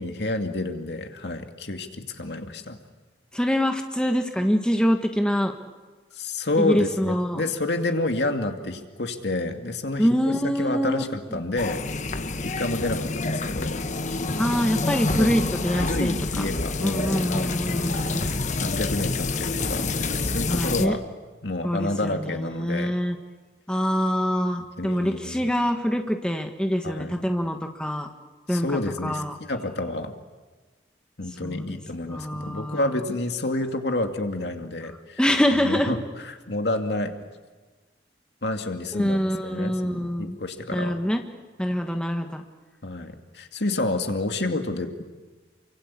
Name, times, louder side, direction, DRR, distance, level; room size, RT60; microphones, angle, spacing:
voice 1, 0.0-2.8 6.1-11.8 12.4-13.8 15.2-15.5 15.8-17.6 18.6-19.9 20.3-21.0 21.4-23.0 24.8-25.5 26.8-27.2 28.5-30.1 31.2-35.2 35.6-37.1 38.4-41.0 41.7-41.8 42.8-45.0, left 2 dB, 70° left, 5 dB, 2.3 m, -29 dB
voice 2, 3.3-5.5 6.6-7.4 10.0-11.0 11.3-11.4 14.4-16.5 16.8-18.3 20.5-20.9 21.6-23.2 23.7-28.1 28.5-28.7 29.0-29.3 31.4-31.8 32.1-32.9 35.2-35.9 38.9-40.4 40.7-41.2 41.6-42.4, equal, 5° left, 4 dB, 1.5 m, -25 dB
sound 1, 11.6-20.9, left 3 dB, 40° left, 1.1 m, -27 dB
29.0 x 24.5 x 8.4 m, 1.3 s
head